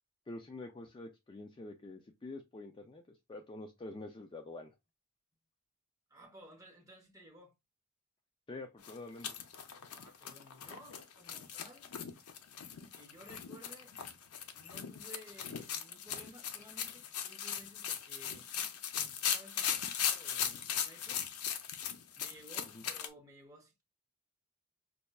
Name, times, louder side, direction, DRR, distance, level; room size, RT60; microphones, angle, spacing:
voice 1, 0.3-4.7 8.5-9.4 22.7-22.8, left 2 dB, 20° left, 0.3 m, -47 dB
voice 2, 6.1-7.5 9.9-11.9 12.9-13.9 14.5-18.5 19.0-21.3 22.2-23.8, equal, 15° right, 0.9 m, -56 dB
sound 1, 8.8-23.1, left 8 dB, 90° left, 0.5 m, -39 dB
5.2 x 2.2 x 2.3 m
head